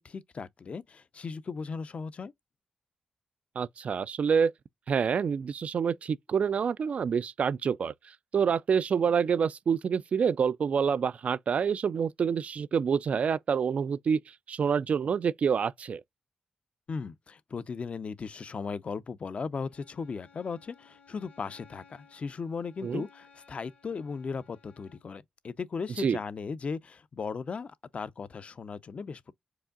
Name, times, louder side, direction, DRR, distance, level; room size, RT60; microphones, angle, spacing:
voice 1, 0.0-2.3 16.9-29.3, left 5 dB, 55° left, 0.5 m, -37 dB
voice 2, 3.6-4.5 4.9-7.9 8.3-14.2 14.5-16.0 22.8-23.0 26.0-26.2, right 6 dB, 60° right, 0.3 m, -27 dB
Bowed string instrument, 19.7-25.1, left 6 dB, 75° left, 2.1 m, -59 dB
4.7 x 2.5 x 2.4 m
supercardioid pair, 40°, 3 cm